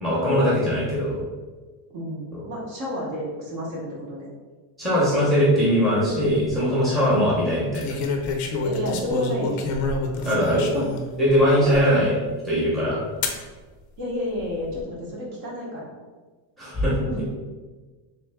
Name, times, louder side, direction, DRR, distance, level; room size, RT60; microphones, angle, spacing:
voice 1, 0.0-1.2 4.8-8.0 10.2-10.6 11.2-12.1 12.4-13.0 16.6-17.0, equal, ahead, -8 dB, 0.8 m, -20 dB
voice 2, 1.9-4.3 8.6-9.7 10.2-10.4 10.7-10.9 11.6-11.8 14.0-15.9 17.1-17.2, equal, 50° right, -3 dB, 1.1 m, -30 dB
sound 1, 6.1-6.5 7.7-11.1 11.7-11.8 13.2-13.4 14.3-14.8, left 3 dB, 40° left, 0.4 m, -28 dB
3.3 x 3.3 x 3.4 m, 1.3 s
cardioid pair, 165°, 49 cm